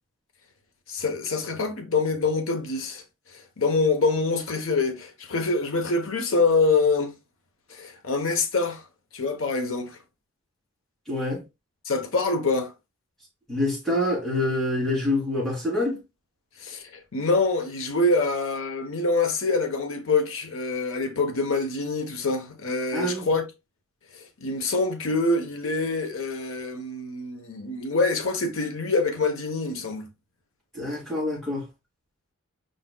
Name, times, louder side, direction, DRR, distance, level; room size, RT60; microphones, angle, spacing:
voice 1, 0.9-3.0 3.3-7.1 7.7-8.8 9.1-10.0 11.8-12.7 16.6-23.5 24.1-30.0, left 3 dB, 65° left, 0.9 m, -25 dB
voice 2, 11.1-11.4 13.5-16.0 22.9-23.3 30.7-31.7, left 1 dB, ahead, 2.5 m, -26 dB
5.0 x 4.0 x 2.2 m
head